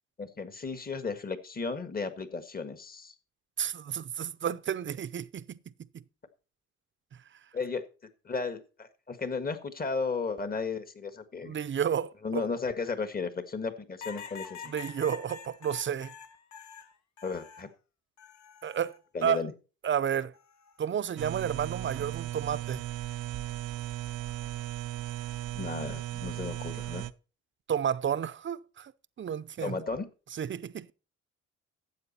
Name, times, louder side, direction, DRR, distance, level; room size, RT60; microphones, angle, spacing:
voice 1, 0.2-3.1 7.5-7.8 8.2-11.5 12.2-14.7 17.2-17.7 19.1-19.5 25.5-27.1 29.6-30.1, left 4 dB, 30° left, 1.6 m, -34 dB
voice 2, 3.6-6.0 11.4-12.4 14.7-16.1 18.6-19.0 19.2-19.5 19.8-20.3 20.8-22.9 27.7-28.9 29.2-29.8 30.4-30.9, right 8 dB, 40° right, 0.6 m, -31 dB
sound 1, 14.0-17.7 18.2-19.0 20.3-20.8, left 6 dB, 65° left, 1.3 m, -46 dB
sound 2, 21.2-27.1, right 14 dB, 85° right, 0.6 m, -36 dB
12.5 x 8.0 x 4.3 m
cardioid pair, 90°, 30 cm